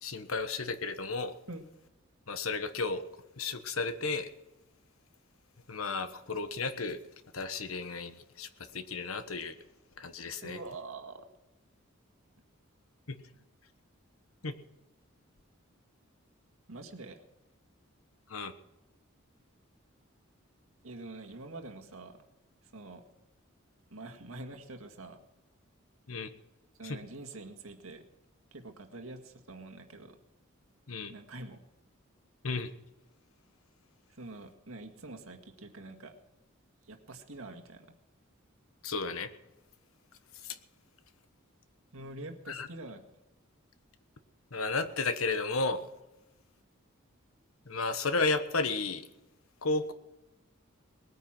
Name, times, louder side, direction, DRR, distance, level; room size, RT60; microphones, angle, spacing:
voice 1, 0.0-1.3 2.3-3.0 3.4-4.3 5.7-7.0 7.3-9.5 10.0-10.6 13.1-13.2 14.4-14.5 18.3-18.5 26.1-26.3 26.8-27.0 30.9-31.1 32.4-32.7 38.8-39.3 40.4-40.6 42.5-42.7 44.5-45.9 47.6-49.0 49.6-49.9, left 3 dB, 85° left, 10 dB, 1.2 m, -33 dB
voice 2, 10.4-11.3 16.7-17.2 20.8-22.2 22.7-23.0 23.9-25.2 26.8-28.0 28.5-30.2 31.1-31.6 34.1-36.1 36.8-37.9 41.9-43.0, right 2 dB, 90° right, 5 dB, 1.9 m, -45 dB
19.5 x 9.5 x 6.0 m, 0.98 s
head